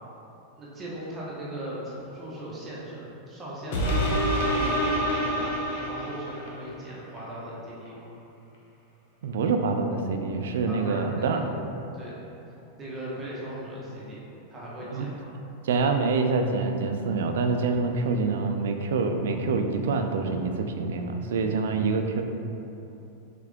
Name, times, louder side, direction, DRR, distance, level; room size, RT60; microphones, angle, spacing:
voice 1, 0.6-8.1 10.7-11.5 11.9-12.2 12.8-15.3, right 1 dB, 25° right, -7 dB, 1.1 m, -38 dB
sound 1, 3.7-6.6 7.2-7.3, equal, 70° left, 0.8 m, -26 dB
voice 2, 9.2-11.5 14.9-15.1 15.6-22.2, right 4 dB, 80° right, 5 dB, 0.3 m, -26 dB
3.7 x 3.4 x 3.5 m, 2.9 s
hypercardioid pair, 120°, 0 cm